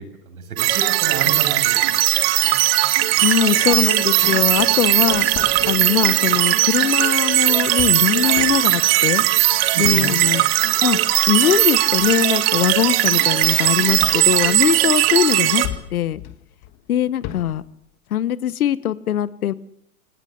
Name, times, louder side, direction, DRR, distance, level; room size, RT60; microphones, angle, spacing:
voice 1, 0.0-2.6 9.7-10.1, right 4 dB, 75° right, 9 dB, 7.3 m, -31 dB
sound 1, 0.6-15.7, right 16 dB, 40° right, 1.7 m, -18 dB
sound 2, 3.1-12.3 12.6-13.3 14.0-15.1 15.6-17.7, left 13 dB, 30° left, 1.6 m, -37 dB
voice 2, 3.2-5.3 5.7-9.2 9.8-10.4 10.8-11.0 11.3-15.6 15.9-16.2 16.9-17.6 18.1-19.5, left 11 dB, 75° left, 16 dB, 1.4 m, -21 dB
25.5 x 17.5 x 8.1 m, 0.74 s
hypercardioid pair, 140°, 43 cm